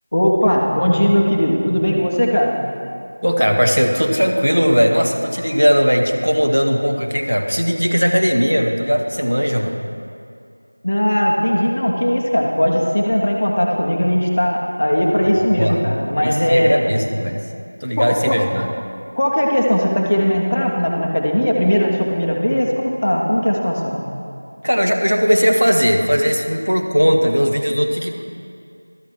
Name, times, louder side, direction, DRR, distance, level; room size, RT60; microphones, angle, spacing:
voice 1, 0.1-2.5 10.8-16.9 18.0-18.4 19.2-24.0, equal, 15° left, -1 dB, 0.5 m, -18 dB
voice 2, 3.2-9.8 15.6-15.8 16.1-17.4 17.8-18.7 24.6-28.2, equal, 80° right, 3 dB, 1.1 m, -18 dB
12.0 x 7.3 x 4.8 m, 2.4 s
figure-of-eight pair, 180°, 0 cm